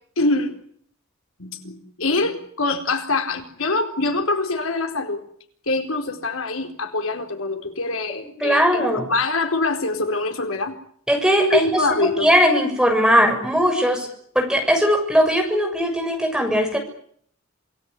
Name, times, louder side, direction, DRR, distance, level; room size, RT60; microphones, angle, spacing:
voice 1, 0.2-0.5 1.4-5.2 5.7-10.7 11.5-12.3, left 3 dB, 85° left, 6 dB, 4.3 m, -24 dB
voice 2, 8.4-9.1 11.1-11.7 12.0-14.1 14.3-16.8, equal, 5° right, 3 dB, 6.8 m, -19 dB
27.5 x 18.5 x 9.9 m, 0.63 s
head